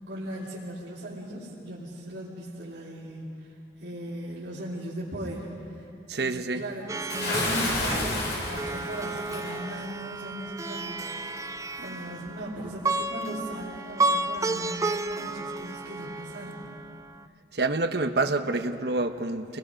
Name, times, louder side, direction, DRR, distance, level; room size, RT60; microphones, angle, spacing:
voice 1, 0.1-3.5 3.8-5.9 6.2-11.5 11.8-16.7, equal, 85° right, -9 dB, 3.3 m, -38 dB
voice 2, 6.1-6.6 17.5-19.6, right 3 dB, 65° right, 7 dB, 1.0 m, -27 dB
Plucked string instrument, 6.9-17.2, right 3 dB, 15° right, 0.4 m, -32 dB
Bathtub (filling or washing) / Splash splatter, 7.1-9.6, left 2 dB, 80° left, 6.2 m, -30 dB
28.5 x 20.5 x 5.1 m, 2.6 s
head